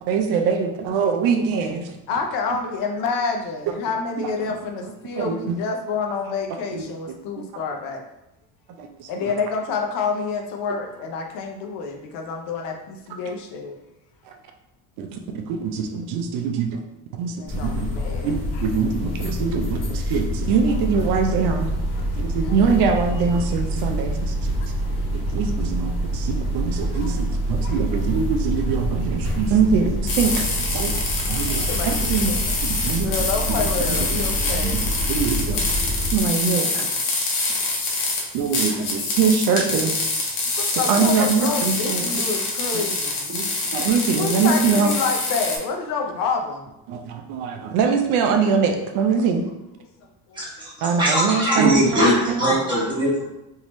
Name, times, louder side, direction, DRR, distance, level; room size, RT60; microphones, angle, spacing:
voice 1, 0.0-2.0 4.2-4.3 5.2-5.6 6.7-6.8 8.8-9.3 14.2-14.3 15.0-16.8 17.2-17.9 18.2-21.7 22.1-24.3 25.1-30.4 30.7-31.0 31.3-32.3 32.6-33.3 33.9-34.1 34.6-34.8 35.1-35.7 36.1-36.9 37.3-37.4 38.3-39.9 40.9-42.2 42.7-42.8 43.3-44.9 46.9-49.5 50.8-52.5, right 5 dB, 70° right, 4 dB, 0.5 m, -23 dB
voice 2, 2.1-8.0 9.1-13.8 17.4-18.6 22.2-22.5 25.3-25.4 26.9-27.1 27.6-27.8 30.8-32.4 33.0-34.8 37.9-38.2 38.7-38.8 40.6-43.3 44.2-46.7 50.0-50.7, left 4 dB, 60° left, 3 dB, 0.6 m, -28 dB
sound 1, 17.5-36.2, equal, 30° left, 1.0 m, -26 dB
sound 2, 30.1-45.6, left 3 dB, 80° left, 1.0 m, -26 dB
voice 3, 50.3-53.2, equal, 10° right, -8 dB, 1.3 m, -21 dB
3.4 x 2.7 x 3.0 m, 0.90 s
cardioid pair, 145°, 37 cm